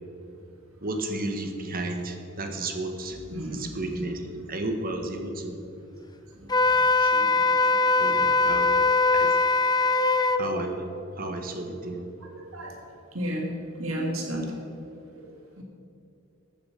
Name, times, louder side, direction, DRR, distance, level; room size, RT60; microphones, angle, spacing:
voice 1, 0.8-3.2 3.5-4.2 4.5-5.6 6.9-8.8 9.1-9.4 10.4-10.8 11.2-12.0, right 2 dB, 45° right, 4 dB, 1.6 m, -33 dB
voice 2, 3.3-3.7 12.2-12.7 13.1-13.4 13.8-14.5 15.6-15.7, right 1 dB, 70° right, 0 dB, 2.4 m, -32 dB
Wind instrument woodwind instrument, 6.5-10.4, left 3 dB, 20° left, 0.5 m, -21 dB
14.5 x 9.3 x 6.8 m, 2.9 s
head